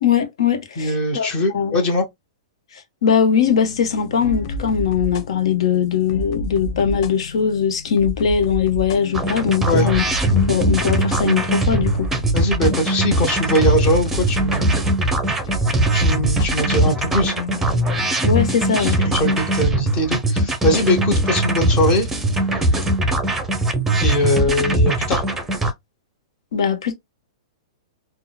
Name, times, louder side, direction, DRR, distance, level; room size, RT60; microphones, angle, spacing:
voice 1, 0.0-1.8 3.0-10.0 10.3-12.1 18.2-19.0 19.2-19.4 26.5-26.9, left 7 dB, 70° left, 1.1 m, -20 dB
voice 2, 0.8-2.0 9.7-9.9 12.3-14.9 15.9-17.3 18.8-22.8 24.0-25.2, left 1 dB, 30° left, 1.3 m, -21 dB
sound 1, 3.4-19.7, left 1 dB, 50° left, 0.8 m, -31 dB
sound 2, 9.1-25.7, right 1 dB, 10° right, 0.7 m, -20 dB
3.7 x 2.3 x 2.2 m
hypercardioid pair, 140°, 3 cm